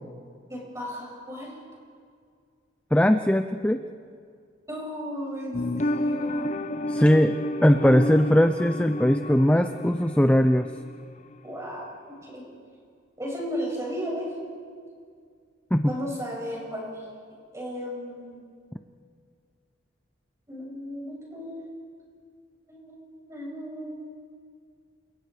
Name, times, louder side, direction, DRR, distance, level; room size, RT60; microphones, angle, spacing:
voice 1, 0.5-1.5 4.7-6.5 7.8-8.3 11.4-11.8 12.2-12.4 13.2-14.3 15.8-17.1 17.5-18.4 20.5-21.6 22.7-24.0, equal, 15° right, -3 dB, 7.8 m, -35 dB
voice 2, 2.9-3.8 6.9-7.3 7.6-10.7 15.7-15.9, equal, 5° left, 7 dB, 0.6 m, -20 dB
sound 1, 5.5-11.1 11.3-11.4, left 1 dB, 40° left, 0.8 m, -31 dB
29.5 x 27.5 x 5.0 m, 2.2 s
head